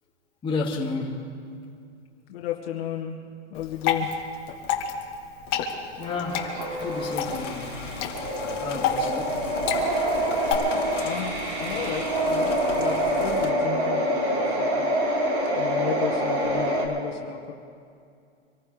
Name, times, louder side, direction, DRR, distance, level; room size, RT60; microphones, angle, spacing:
voice 1, 0.4-1.3 5.9-7.8 8.6-9.4, left 3 dB, 15° left, -4 dB, 2.5 m, -32 dB
voice 2, 2.3-3.2 3.5-4.1 11.0-14.8 15.6-17.5, left 10 dB, 55° left, 0 dB, 1.9 m, -33 dB
Water / Drip, 3.5-10.5, left 7 dB, 35° left, 1.9 m, -30 dB
sound 1, 6.0-16.9, right 1 dB, 40° right, 3.7 m, -26 dB
sound 2, 6.4-13.5, left 7 dB, 80° left, 2.1 m, -39 dB
26.0 x 14.5 x 3.5 m, 2.4 s
hypercardioid pair, 145°, 36 cm